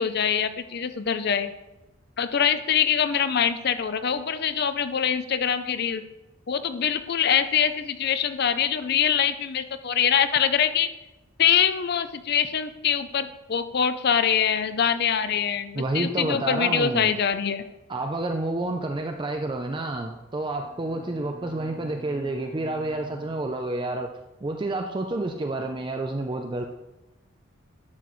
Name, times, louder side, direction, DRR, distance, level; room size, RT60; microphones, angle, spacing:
voice 1, 0.0-1.5 2.2-6.0 6.5-10.9 11.4-17.6, left 8 dB, 50° left, 11 dB, 0.5 m, -24 dB
voice 2, 15.7-17.1 17.9-24.1 24.4-26.6, right 2 dB, 20° right, 4 dB, 0.4 m, -29 dB
Bowed string instrument, 20.6-24.1, left 1 dB, 75° right, 2.0 m, -46 dB
11.5 x 6.1 x 3.1 m, 1.0 s
head